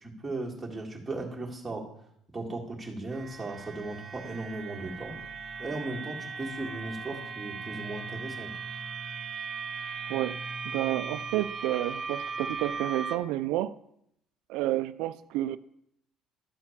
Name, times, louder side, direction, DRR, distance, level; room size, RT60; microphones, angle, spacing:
voice 1, 0.0-1.8 2.3-5.2 5.6-8.5, right 2 dB, 10° right, -2 dB, 1.9 m, -37 dB
sound 1, 3.1-13.2, right 5 dB, 25° right, 1.0 m, -38 dB
voice 2, 10.7-13.8 14.5-15.6, right 14 dB, 85° right, 11 dB, 0.4 m, -30 dB
12.0 x 4.4 x 7.1 m, 0.75 s
cardioid pair, 145°, 0 cm